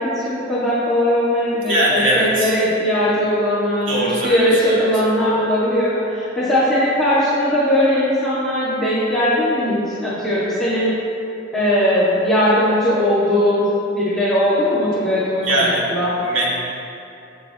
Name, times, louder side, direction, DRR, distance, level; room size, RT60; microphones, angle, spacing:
voice 1, 0.0-10.9 11.5-13.6 13.9-15.6 15.9-16.1, equal, 5° left, -13 dB, 2.0 m, -19 dB
voice 2, 1.6-2.5 3.9-4.9 15.4-15.9 16.2-16.5, right 1 dB, 80° right, -5 dB, 2.4 m, -20 dB
17.5 x 7.4 x 3.0 m, 2.8 s
head